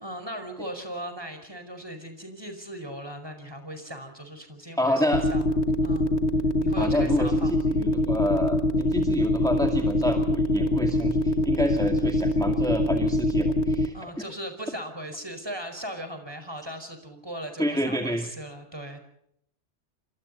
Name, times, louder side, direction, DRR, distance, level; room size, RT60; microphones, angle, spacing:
voice 1, 0.0-5.5 5.8-6.1 6.6-7.6 9.0-9.3 13.9-19.0, right 1 dB, 20° right, 7 dB, 5.2 m, -38 dB
voice 2, 4.8-5.3 6.8-13.9 17.6-18.3, left 1 dB, 5° left, 3 dB, 2.3 m, -28 dB
sound 1, 5.1-13.9, left 1 dB, 80° left, 1.7 m, -23 dB
29.5 x 26.5 x 4.2 m, 0.72 s
omnidirectional pair, 1.2 m